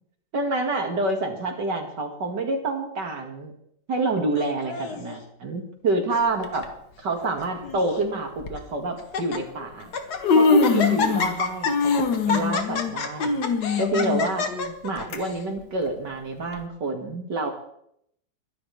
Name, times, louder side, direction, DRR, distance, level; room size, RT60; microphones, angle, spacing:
voice 1, 0.3-3.5 3.9-6.7 7.0-9.9 10.3-11.9 12.3-13.3 13.8-14.5 14.8-17.5, right 2 dB, 85° right, 3 dB, 2.9 m, -27 dB
Laughter, 4.4-5.2 5.9-6.3 6.5-6.6 7.4-8.0 8.6-8.7 9.0-9.4 9.8-10.2 10.6-15.4, left 4 dB, 70° left, 1.9 m, -29 dB
Human voice, 6.4-6.7 7.7-7.8 8.4-8.6 9.6-9.7 10.0-11.4 11.7-15.2 15.6-15.7 16.5-16.6, left 4 dB, 90° left, 1.9 m, -23 dB
22.5 x 11.0 x 3.5 m, 0.72 s
omnidirectional pair, 1.8 m